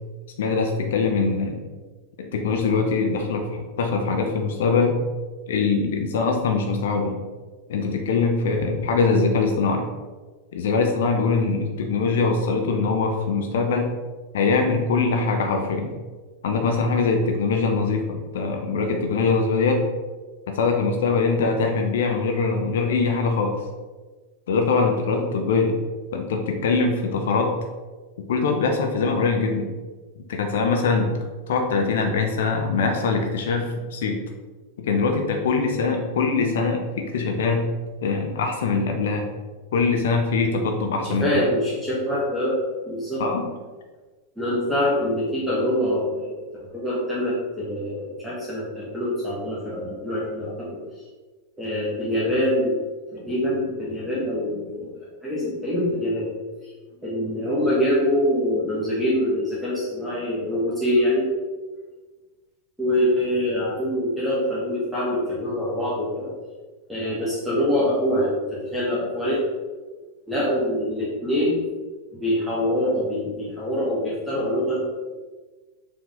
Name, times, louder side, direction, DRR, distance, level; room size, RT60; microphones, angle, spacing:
voice 1, 0.4-1.6 2.3-5.0 5.5-7.2 7.7-9.8 10.5-13.9 14.3-15.9 16.4-19.8 20.5-23.6 24.5-25.8 26.1-27.5 28.2-29.7 30.3-31.1 31.5-34.2 34.8-37.7 38.0-39.3 39.7-41.3 43.2-43.5, left 4 dB, 60° left, 3 dB, 0.8 m, -22 dB
voice 2, 41.0-43.3 44.4-46.4 46.7-50.8 51.6-52.8 53.1-54.9 55.2-56.3 56.6-56.7 57.0-61.3 62.8-66.3 66.9-69.4 70.3-71.7 72.1-74.9, left 1 dB, 5° right, -9 dB, 1.6 m, -24 dB
6.8 x 3.8 x 3.7 m, 1.3 s
figure-of-eight pair, 90°, 0 cm